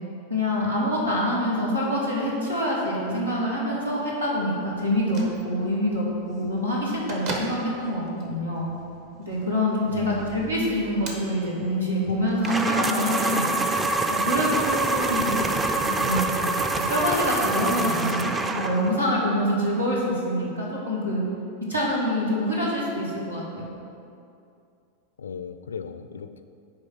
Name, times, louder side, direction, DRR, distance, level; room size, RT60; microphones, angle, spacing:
voice 1, 0.3-8.7 9.2-13.5 14.1-15.5 15.8-16.4 16.8-21.2 21.7-23.7, equal, 85° right, -5 dB, 1.9 m, -26 dB
Bell / Microwave oven, 4.9-13.1, right 2 dB, 45° right, 1.1 m, -41 dB
voice 2, 9.9-10.6 25.2-26.4, left 6 dB, 70° left, 10 dB, 0.4 m, -36 dB
sound 1, 12.4-19.0, right 2 dB, 15° right, 0.4 m, -25 dB
9.7 x 3.3 x 6.2 m, 2.5 s
figure-of-eight pair, 90°, 0 cm